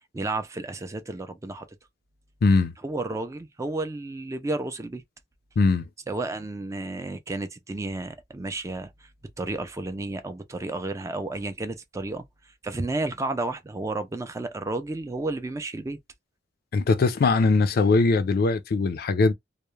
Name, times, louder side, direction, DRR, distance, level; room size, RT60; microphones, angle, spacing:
voice 1, 0.1-1.7 2.8-5.0 6.1-9.1 9.4-12.2 12.6-16.0, right 2 dB, 15° right, 0.3 m, -32 dB
voice 2, 2.4-2.7 5.6-5.9 16.7-19.3, left 3 dB, 55° left, 0.4 m, -21 dB
2.2 x 2.0 x 3.0 m
head